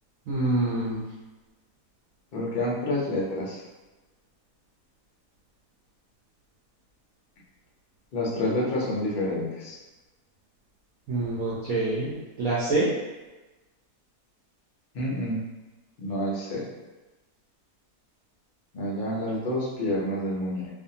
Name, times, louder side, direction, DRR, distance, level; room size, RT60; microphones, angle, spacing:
voice 1, 0.3-1.0 11.1-12.9, right 2 dB, 65° right, -8 dB, 0.9 m, -26 dB
voice 2, 2.3-3.6 8.1-9.8 14.9-15.4 16.0-16.7 18.7-20.7, left 1 dB, 60° left, -4 dB, 0.5 m, -28 dB
2.6 x 2.4 x 2.7 m, 1.1 s
omnidirectional pair, 1.7 m